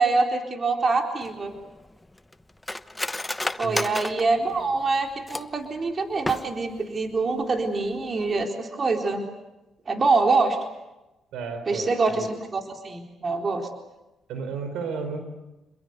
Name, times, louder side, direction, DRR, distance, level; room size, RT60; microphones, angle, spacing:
voice 1, 0.0-1.6 3.6-9.3 9.9-10.6 11.7-13.7, right 3 dB, 40° right, 3 dB, 4.0 m, -25 dB
Cutlery silverware, 1.2-5.7 6.1-6.8 7.1-7.2 7.6-7.9 8.3-8.4, left 1 dB, 10° left, 1.1 m, -33 dB
voice 2, 11.3-12.3 14.3-15.2, right 4 dB, 85° right, 7 dB, 4.7 m, -33 dB
28.5 x 22.0 x 8.2 m, 1.0 s
cardioid pair, 75°, 0 cm